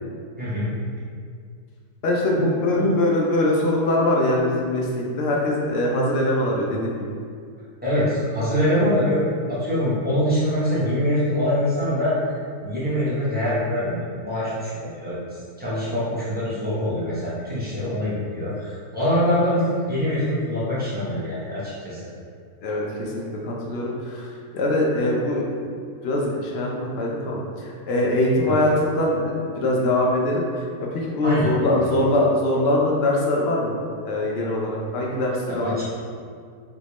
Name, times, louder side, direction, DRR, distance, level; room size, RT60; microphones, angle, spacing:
voice 1, 0.4-0.7 2.3-2.5 2.7-2.9 7.8-9.2 9.5-12.2 12.6-15.2 15.6-22.0 28.5-28.6 31.2-31.5 31.8-31.9 35.6-35.8, equal, 10° right, -11 dB, 0.7 m, -24 dB
voice 2, 2.0-7.2 22.6-25.7 26.0-30.6 30.9-33.8 34.0-35.8, left 1 dB, 70° left, -3 dB, 0.6 m, -23 dB
3.3 x 2.7 x 3.0 m, 2.2 s
omnidirectional pair, 1.6 m